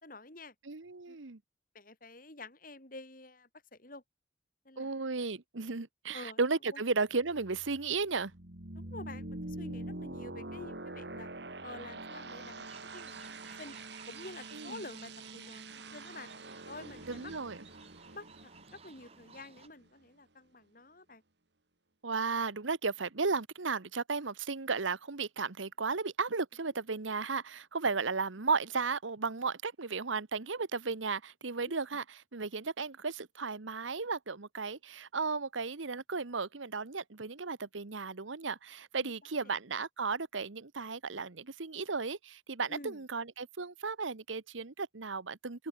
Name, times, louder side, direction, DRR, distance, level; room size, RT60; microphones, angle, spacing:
voice 1, 0.0-0.5 1.1-1.2 1.7-4.0 4.7-4.9 6.1-6.4 6.7-6.8 8.8-11.3 11.6-13.8 14.1-16.3 16.6-17.3 18.1-21.2 38.9-39.1 39.4-39.5 42.7-43.0, left 2 dB, 45° left, 5.4 m, -49 dB
voice 2, 0.6-1.4 4.8-8.3 14.5-14.8 17.1-17.6 22.0-45.7, right 4 dB, 85° right, 1.2 m, -34 dB
sound 1, 7.2-19.9, right 2 dB, 60° right, 3.1 m, -45 dB
sound 2, 12.6-19.7, right 5 dB, 30° right, 3.7 m, -56 dB
head